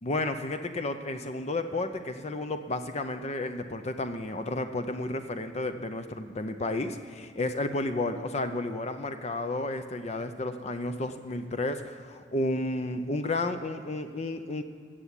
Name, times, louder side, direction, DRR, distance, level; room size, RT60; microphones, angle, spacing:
voice 1, 0.0-14.6, left 2 dB, 35° left, 8 dB, 0.6 m, -32 dB
15.5 x 7.1 x 8.3 m, 2.3 s
head